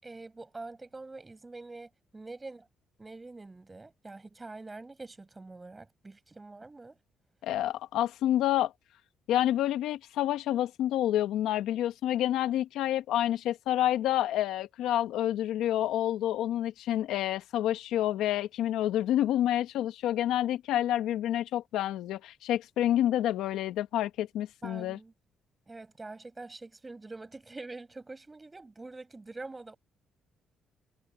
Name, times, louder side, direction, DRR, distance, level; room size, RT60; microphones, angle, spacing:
voice 1, 0.0-2.6 3.0-7.0 24.6-25.1 25.7-29.8, right 3 dB, 25° right, 6.8 m, -45 dB
voice 2, 7.4-8.7 9.3-25.0, left 12 dB, 85° left, 1.3 m, -28 dB
cardioid pair, 75°, 0 cm